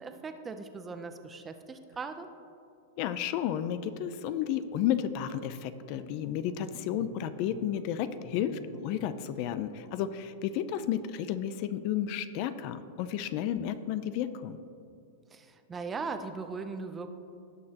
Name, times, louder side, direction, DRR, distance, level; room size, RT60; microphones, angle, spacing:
voice 1, 0.0-2.3 15.3-17.1, right 4 dB, 15° right, 8 dB, 0.5 m, -39 dB
voice 2, 3.0-14.6, left 10 dB, 45° left, 13 dB, 0.4 m, -32 dB
sound 1, 5.5-9.3, left 3 dB, 25° left, 1.0 m, -50 dB
17.0 x 6.5 x 2.9 m, 2.6 s
supercardioid pair, 140°, 0 cm